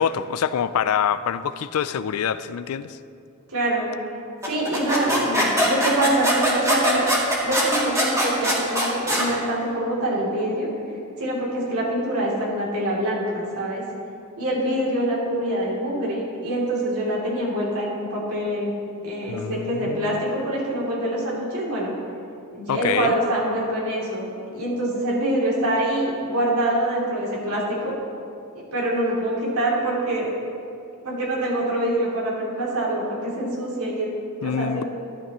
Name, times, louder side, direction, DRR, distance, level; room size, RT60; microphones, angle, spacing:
voice 1, 0.0-3.0 19.3-20.3 22.7-23.2 34.4-34.8, left 8 dB, 75° left, 14 dB, 0.4 m, -25 dB
voice 2, 3.5-3.9 4.5-7.0 7.4-10.7 11.2-13.8 14.4-18.7 19.0-21.9 22.5-28.0 28.7-30.3 31.0-34.1 34.4-34.8, right 1 dB, 80° right, -5 dB, 3.0 m, -25 dB
sound 1, 4.4-9.3, equal, 15° right, 1.7 m, -22 dB
12.5 x 12.0 x 3.1 m, 2.6 s
head